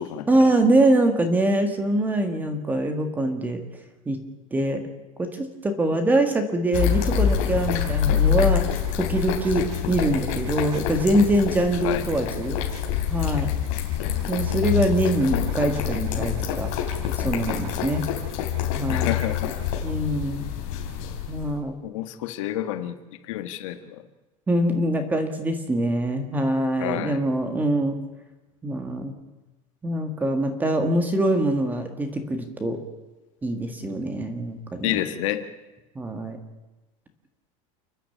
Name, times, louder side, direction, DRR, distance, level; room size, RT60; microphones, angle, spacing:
voice 1, 0.3-3.6 4.1-4.2 4.5-4.8 5.2-8.6 9.0-12.6 13.1-13.5 14.3-16.7 17.2-18.0 18.8-19.1 19.8-20.5 21.3-21.8 24.5-28.0 28.6-29.1 29.8-32.8 33.4-35.0 36.0-36.4, right 1 dB, 10° right, 7 dB, 1.8 m, -23 dB
sound 1, 6.7-21.5, left 9 dB, 45° left, 4.0 m, -26 dB
voice 2, 15.2-15.5 18.9-19.7 21.6-23.0 23.2-24.0 26.8-27.2 34.8-35.4, left 13 dB, 70° left, 9 dB, 1.6 m, -29 dB
30.0 x 10.0 x 8.5 m, 1.1 s
supercardioid pair, 170°, 17 cm